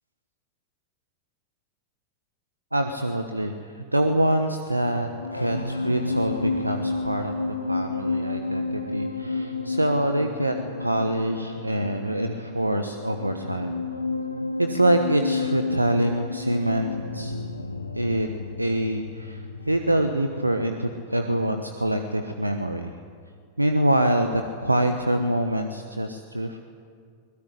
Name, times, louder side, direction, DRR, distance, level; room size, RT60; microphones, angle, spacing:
voice 1, 2.7-5.1 5.3-7.3 7.7-13.7 14.6-16.9 17.1-17.3 17.9-18.3 18.6-22.9 23.6-26.6, right 1 dB, 85° right, 6 dB, 1.2 m, -25 dB
sound 1, 5.0-21.6 21.9-22.2, left 3 dB, 80° left, 1.3 m, -31 dB
22.0 x 21.5 x 10.0 m, 2.1 s
figure-of-eight pair, 90°, 0 cm